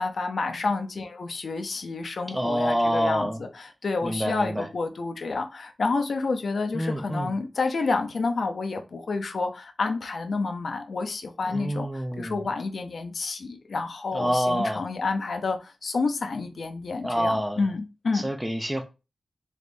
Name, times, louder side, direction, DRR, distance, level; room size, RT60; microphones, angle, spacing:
voice 1, 0.0-18.3, left 3 dB, 70° left, 0.6 m, -29 dB
voice 2, 2.3-3.4 4.0-4.7 6.7-7.3 11.5-12.4 14.1-14.8 17.0-17.6 18.1-18.8, equal, 10° right, 0.7 m, -27 dB
3.4 x 3.2 x 2.6 m
cardioid pair, 55°, 0 cm